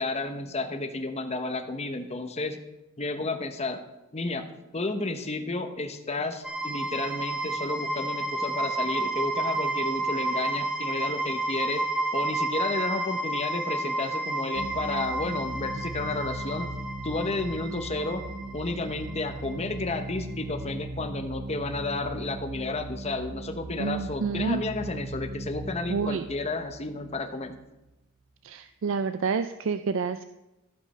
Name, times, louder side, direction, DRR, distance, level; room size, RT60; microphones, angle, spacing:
voice 1, 0.0-2.6 3.0-3.8 4.1-16.7 17.0-18.2 18.5-27.6, left 2 dB, 30° left, 6 dB, 0.9 m, -32 dB
sound 1, 6.4-20.3, right 2 dB, 5° right, 0.7 m, -31 dB
sound 2, 14.5-27.8, right 2 dB, 80° right, 1.2 m, -38 dB
voice 2, 23.8-24.6 25.9-26.2 28.4-30.2, right 5 dB, 60° right, 11 dB, 0.4 m, -29 dB
14.5 x 5.3 x 5.5 m, 0.98 s
head